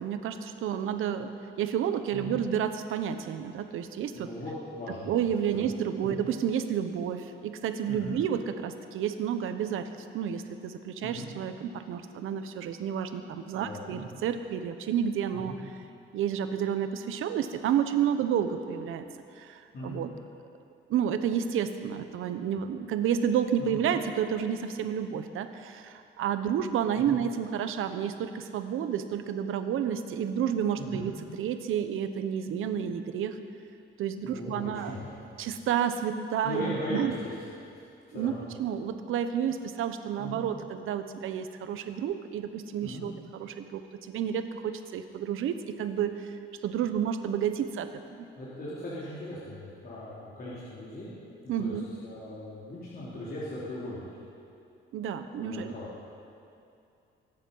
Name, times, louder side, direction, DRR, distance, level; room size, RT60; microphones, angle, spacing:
voice 1, 0.0-4.3 5.1-9.9 10.1-15.5 16.1-19.0 19.4-20.1 20.9-33.4 34.0-35.0 35.4-37.1 38.1-38.3 38.6-46.3 46.6-47.9 51.5-51.8 54.9-55.7, right 8 dB, 85° right, 9 dB, 1.0 m, -30 dB
voice 2, 4.1-5.1 5.5-5.6 6.0-6.2 7.9-8.2 11.0-11.3 13.5-14.1 15.3-15.6 19.7-20.0 23.6-23.8 27.0-27.2 30.8-31.1 34.2-35.1 36.4-37.3 38.1-38.4 40.2-40.4 42.8-43.0 48.4-51.1 51.4-54.1 55.3-55.9, left 1 dB, 45° left, -9 dB, 4.0 m, -39 dB
24.0 x 10.0 x 5.6 m, 2.6 s
cardioid pair, 125°, 21 cm